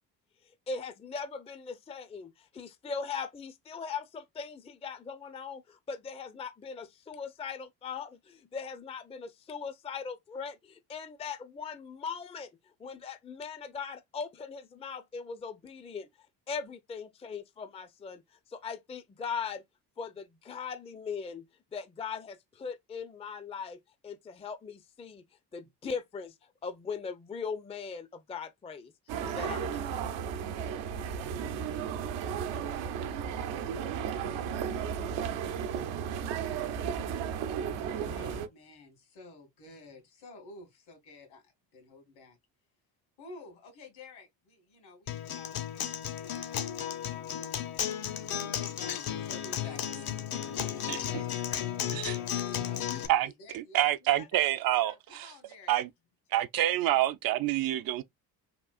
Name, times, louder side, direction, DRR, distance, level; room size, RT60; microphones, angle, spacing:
voice 1, 0.7-12.5 12.8-18.2 18.5-19.6 20.0-21.5 21.7-25.2 25.5-26.4 26.6-28.9 29.2-30.2, left 5 dB, 15° left, 0.5 m, -40 dB
sound 1, 29.1-38.5, right 8 dB, 75° right, 0.8 m, -34 dB
voice 2, 38.0-42.4 43.2-52.3 52.6-53.9 54.2-54.4 54.7-55.8, left 3 dB, 70° left, 1.9 m, -52 dB
Acoustic guitar, 45.1-53.1, left 10 dB, 50° left, 0.7 m, -34 dB
voice 3, 53.1-55.3 55.7-55.9 56.3-58.0, right 14 dB, 50° right, 0.4 m, -27 dB
3.7 x 2.4 x 2.4 m
hypercardioid pair, 60°, 48 cm